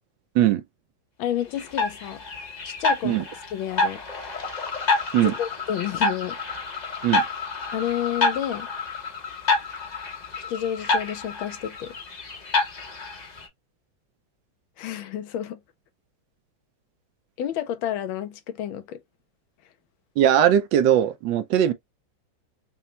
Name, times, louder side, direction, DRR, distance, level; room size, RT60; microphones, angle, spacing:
voice 1, 1.2-2.2 2.6-3.2 3.5-4.0 5.2-6.4 7.7-8.7 10.4-11.9 14.8-15.6 17.4-19.0, left 10 dB, 85° left, 1.4 m, -30 dB
sound 1, 1.6-13.5, left 3 dB, 40° left, 0.6 m, -28 dB
voice 2, 20.2-21.7, right 10 dB, 75° right, 1.2 m, -20 dB
5.5 x 2.2 x 2.8 m
omnidirectional pair, 2.1 m